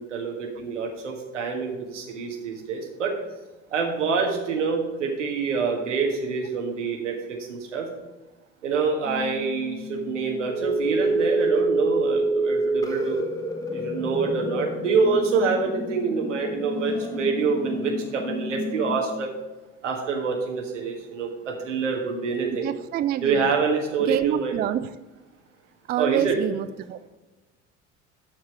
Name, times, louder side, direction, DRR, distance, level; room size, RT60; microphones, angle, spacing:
voice 1, 0.0-3.1 3.7-7.9 8.6-13.2 13.7-19.3 19.8-22.7 23.2-24.6 26.0-26.4, right 5 dB, 75° right, 2 dB, 1.6 m, -26 dB
sound 1, 9.0-19.0, right 1 dB, 10° left, 1.1 m, -28 dB
voice 2, 22.6-23.5 24.0-25.0 25.9-27.1, right 11 dB, 25° right, 12 dB, 0.4 m, -27 dB
12.5 x 4.7 x 4.5 m, 1.1 s
figure-of-eight pair, 60°, 37 cm